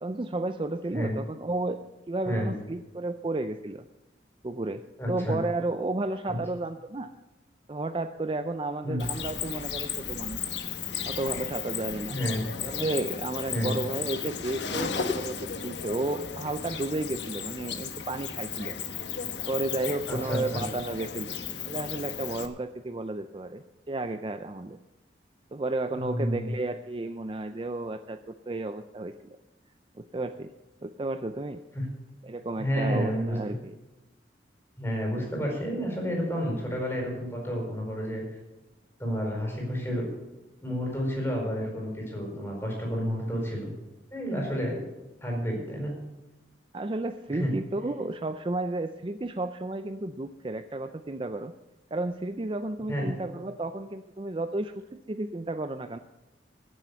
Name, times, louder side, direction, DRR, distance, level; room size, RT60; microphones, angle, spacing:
voice 1, 0.0-1.8 2.1-3.8 4.4-7.1 7.7-10.4 11.0-12.2 12.6-18.8 19.5-21.4 21.7-24.8 25.5-29.4 30.0-30.5 30.8-31.6 32.2-33.7 46.7-51.5 51.9-56.0, right 2 dB, 30° right, 9 dB, 0.4 m, -32 dB
voice 2, 5.0-5.4 6.3-6.4 8.8-9.1 12.1-12.4 13.5-13.8 20.1-20.6 25.9-26.5 31.7-31.8 32.6-33.4 34.8-38.2 39.0-40.1 40.6-43.8 44.1-44.8 45.2-46.0 47.3-47.5 52.9-53.1, equal, 15° left, 0 dB, 4.6 m, -30 dB
Cricket, 9.0-22.5, left 7 dB, 75° left, 1.2 m, -35 dB
15.5 x 7.5 x 6.9 m, 1.1 s
head